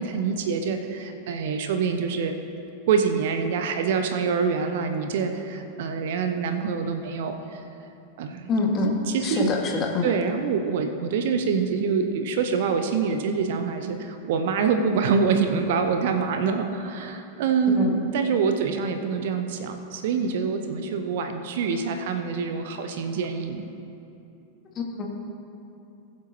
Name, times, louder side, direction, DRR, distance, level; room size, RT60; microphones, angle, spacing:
voice 1, 0.0-2.3 2.9-7.6 8.2-8.5 9.1-9.5 10.0-23.7, right 5 dB, 55° right, 7 dB, 0.7 m, -25 dB
voice 2, 8.5-8.9 9.2-10.1 17.7-17.9 24.7-25.1, left 3 dB, 30° left, 0 dB, 1.7 m, -25 dB
20.0 x 7.5 x 2.8 m, 2.7 s
figure-of-eight pair, 90°, 0 cm